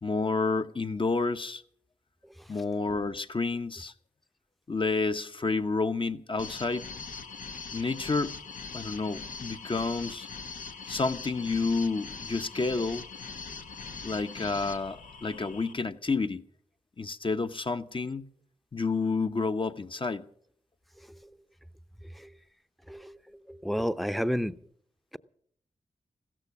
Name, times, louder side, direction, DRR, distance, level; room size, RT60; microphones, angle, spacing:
voice 1, 0.0-1.6 2.5-3.9 4.7-6.9 7.7-8.4 8.7-10.3 10.9-13.0 14.0-16.4 17.0-18.2 18.7-20.2, left 3 dB, 40° left, 1.0 m, -30 dB
sound 1, 6.4-15.7, left 5 dB, 85° left, 0.9 m, -42 dB
voice 2, 23.5-24.6, equal, ahead, 0.7 m, -30 dB
16.0 x 14.0 x 5.9 m
cardioid pair, 45°, 14 cm